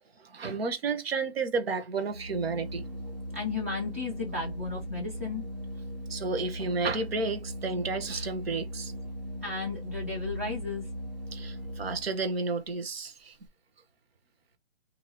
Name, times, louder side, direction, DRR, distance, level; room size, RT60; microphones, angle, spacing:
voice 1, 0.3-2.8 6.1-8.9 11.3-13.3, right 4 dB, 65° right, 1.0 m, -31 dB
Organ, 2.0-12.3, equal, 40° right, 0.8 m, -39 dB
voice 2, 3.3-5.4 9.4-10.9, left 4 dB, 15° right, 0.5 m, -34 dB
2.9 x 2.7 x 4.0 m
hypercardioid pair, 170°, 33 cm